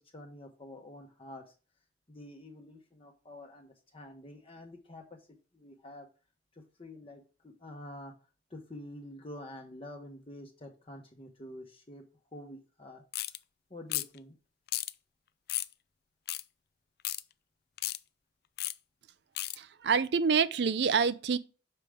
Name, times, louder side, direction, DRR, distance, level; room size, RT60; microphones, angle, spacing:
voice 1, 0.0-1.5 2.1-5.2 5.5-6.1 6.5-8.1 8.5-12.0 12.3-13.0 13.7-14.4, left 1 dB, 35° left, 1.0 m, -48 dB
sound 1, 13.1-13.4 13.9-14.2 14.7-14.9 15.5-15.7 16.3-16.4 17.0-17.2 17.8-18.0 18.6-18.7 19.4-19.6, left 15 dB, 60° left, 0.4 m, -33 dB
voice 2, 19.6-21.4, right 6 dB, 70° right, 0.5 m, -27 dB
6.8 x 4.9 x 3.4 m
head